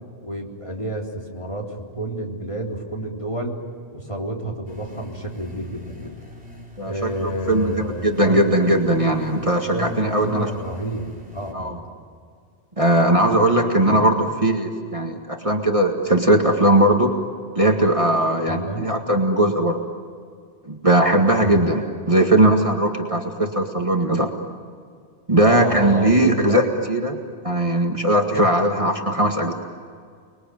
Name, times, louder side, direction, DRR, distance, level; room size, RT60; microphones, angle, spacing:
voice 1, 0.2-3.6 3.9-6.2 6.8-8.5 9.7-11.9 13.9-14.0 18.5-18.9 21.4-21.7 25.3-26.6, right 1 dB, 30° left, -1 dB, 3.7 m, -30 dB
sound 1, 4.7-11.5, left 1 dB, 5° right, 5.0 m, -42 dB
voice 2, 6.8-10.5 11.5-11.8 12.8-17.1 17.6-19.9 20.7-24.3 25.3-27.2 27.4-29.5, right 1 dB, 30° right, 2 dB, 2.0 m, -19 dB
30.0 x 21.5 x 9.3 m, 2.1 s
omnidirectional pair, 1.2 m